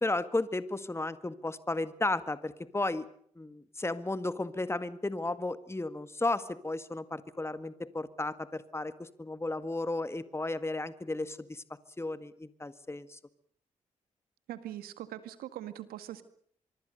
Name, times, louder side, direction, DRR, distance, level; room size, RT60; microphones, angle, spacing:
voice 1, 0.0-3.1 3.4-11.6 12.0-13.2, left 2 dB, 15° left, 13 dB, 1.7 m, -34 dB
voice 2, 14.5-16.2, right 12 dB, 80° right, 12 dB, 1.9 m, -42 dB
24.5 x 24.0 x 6.7 m, 0.62 s
hypercardioid pair, 45°, 15 cm